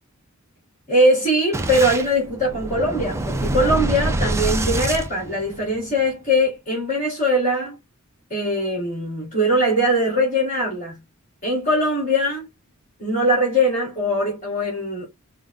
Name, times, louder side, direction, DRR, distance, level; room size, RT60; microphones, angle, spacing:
voice 1, 0.9-7.8 8.3-11.0 11.4-12.5 13.0-15.1, equal, 35° left, 2.0 m, -21 dB
Boom, 1.5-5.9, right 1 dB, 15° right, 0.4 m, -25 dB
4.9 x 2.2 x 3.6 m
head